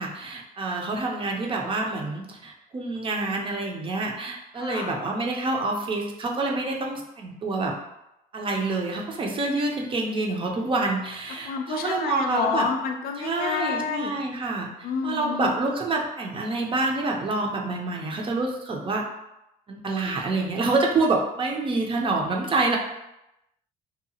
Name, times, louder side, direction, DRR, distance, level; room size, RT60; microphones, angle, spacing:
voice 1, 0.0-7.7 8.3-12.7 13.2-14.7 15.0-19.0 19.7-22.8, right 3 dB, 30° right, 1 dB, 0.5 m, -27 dB
voice 2, 4.6-4.9 11.5-14.1 14.8-15.5, left 6 dB, 60° left, 5 dB, 0.4 m, -29 dB
2.7 x 2.3 x 2.7 m, 0.88 s
cardioid pair, 110°, 17 cm